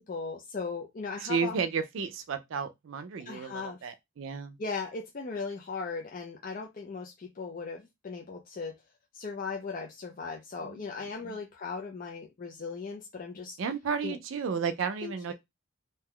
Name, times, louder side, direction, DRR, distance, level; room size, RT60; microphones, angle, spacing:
voice 1, 0.1-1.6 3.3-3.8 4.6-8.8 9.1-13.6 14.0-14.2 15.0-15.3, left 4 dB, 45° left, 0.5 m, -38 dB
voice 2, 1.2-4.6 10.6-10.8 11.2-11.3 13.6-15.3, right 5 dB, 70° right, 0.4 m, -33 dB
2.7 x 2.2 x 3.5 m
head